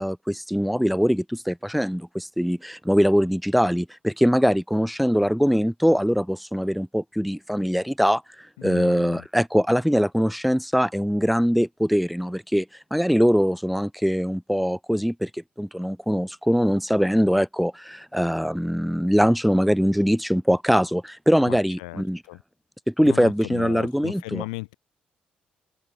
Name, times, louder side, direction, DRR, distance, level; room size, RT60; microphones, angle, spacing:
voice 1, 0.0-8.2 8.6-12.7 12.9-22.2 22.9-24.4, equal, ahead, 7.2 m, -22 dB
voice 2, 8.6-9.3 21.5-22.0 22.3-22.4 23.0-24.7, left 25 dB, 80° left, 7.4 m, -36 dB
open air
hypercardioid pair, 45°, 4 cm